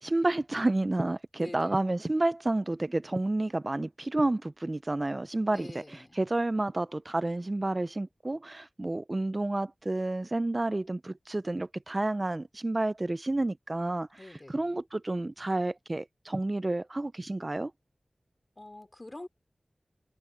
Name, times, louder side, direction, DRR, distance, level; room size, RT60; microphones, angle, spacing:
voice 1, 0.0-17.7, right 2 dB, 35° right, 0.4 m, -30 dB
voice 2, 1.4-1.8 5.5-6.2 14.2-14.7 18.6-19.3, left 1 dB, 30° left, 3.7 m, -45 dB
wide cardioid pair, 65°, 0 cm